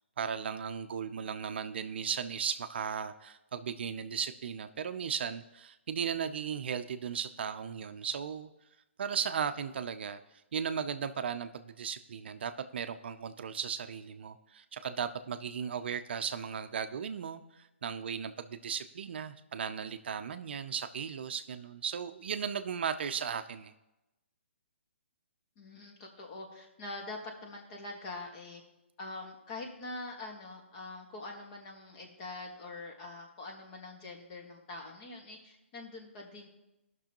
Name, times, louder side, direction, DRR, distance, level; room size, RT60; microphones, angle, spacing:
voice 1, 0.2-8.5 9.0-23.7, right 7 dB, 55° right, 9 dB, 0.5 m, -36 dB
voice 2, 25.6-28.6 29.0-36.5, left 2 dB, 30° left, 1 dB, 1.8 m, -44 dB
16.5 x 6.1 x 3.0 m, 0.96 s
hypercardioid pair, 150°, 7 cm